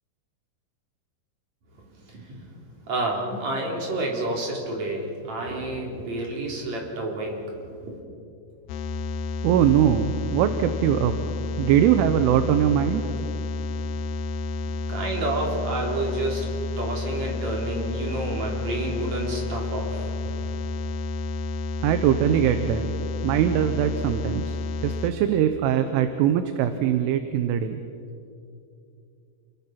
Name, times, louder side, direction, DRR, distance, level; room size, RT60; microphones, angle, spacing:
voice 1, 1.7-2.5 2.9-7.9 14.9-20.5, right 2 dB, 40° right, 0 dB, 4.2 m, -30 dB
sound 1, 8.7-25.1, left 2 dB, 80° left, 2.3 m, -30 dB
voice 2, 9.4-11.2 11.6-13.0 21.8-22.9 23.2-24.6 24.8-27.8, right 10 dB, 80° right, 9 dB, 3.3 m, -21 dB
29.0 x 22.5 x 5.9 m, 2.5 s
omnidirectional pair, 5.7 m